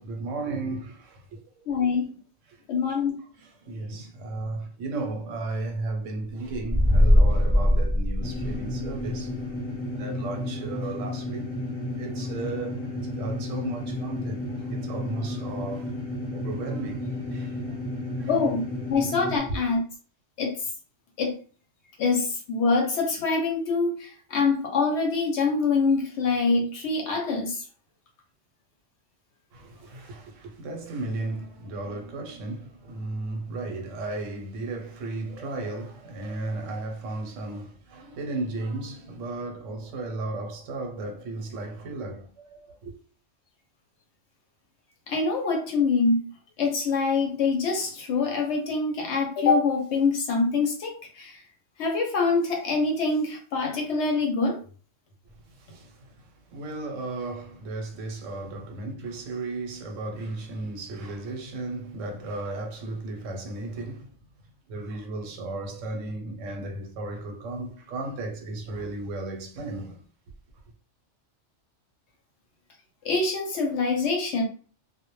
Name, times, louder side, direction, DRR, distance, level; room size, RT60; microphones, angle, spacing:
voice 1, 0.0-1.6 2.5-2.6 3.2-9.3 9.8-11.5 11.9-15.9 16.3-17.8 18.2-18.3 19.5-19.6 29.5-42.9 55.4-64.1 64.7-70.0, right 2 dB, 80° right, 1.0 m, -35 dB
voice 2, 1.7-2.1 2.7-3.2 18.3-18.6 18.9-19.8 20.4-20.6 21.2-21.3 22.0-27.6 45.1-46.3 46.6-51.4 51.8-54.6 73.0-74.4, left 4 dB, 70° left, 0.8 m, -25 dB
sound 1, 6.5-9.0, left 1 dB, 30° right, 0.5 m, -20 dB
sound 2, 8.2-19.4, left 1 dB, 30° left, 0.7 m, -33 dB
2.1 x 2.1 x 3.0 m
omnidirectional pair, 1.3 m